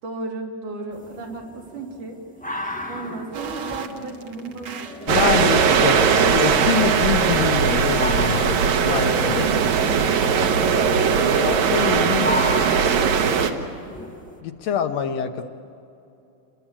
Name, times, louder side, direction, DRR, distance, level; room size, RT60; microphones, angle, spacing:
voice 1, 0.0-2.2 2.9-5.1 9.0-10.6 15.1-15.3, right 2 dB, 90° right, -1 dB, 4.6 m, -34 dB
sound 1, 0.9-14.4, left 1 dB, 10° left, 0.4 m, -35 dB
sound 2, 3.3-7.5, right 6 dB, 55° right, 1.7 m, -36 dB
voice 2, 5.1-9.5 11.4-12.5 14.4-15.4, left 8 dB, 70° left, 7 dB, 1.9 m, -26 dB
sound 3, 5.1-13.5, right 6 dB, 70° right, 2.5 m, -19 dB
29.5 x 22.0 x 7.5 m, 2.7 s
omnidirectional pair, 3.5 m